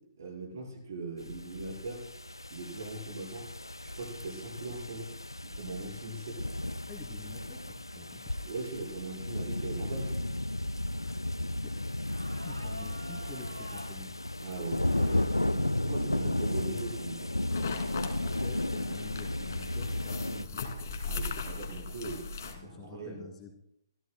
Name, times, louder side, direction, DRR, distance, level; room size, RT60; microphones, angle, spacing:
voice 1, 0.2-2.0 2.5-3.5 3.8-5.1 5.4-6.4 8.4-10.3 14.4-17.3 21.0-23.2, right 3 dB, 50° right, -1 dB, 5.3 m, -40 dB
sound 1, 1.2-20.5, left 1 dB, 85° left, 0.4 m, -34 dB
voice 2, 6.9-8.2 11.0-11.1 12.4-14.2 16.0-16.3 18.2-20.5 22.5-23.5, left 5 dB, 10° left, 0 dB, 2.5 m, -48 dB
sound 2, 12.1-14.0 14.8-15.4 16.0-16.1 16.8-17.1, equal, 90° right, 2.4 m, -47 dB
sound 3, 17.5-22.5, left 4 dB, 50° left, 2.3 m, -38 dB
26.0 x 14.5 x 2.3 m, 0.77 s
figure-of-eight pair, 125°, 2 cm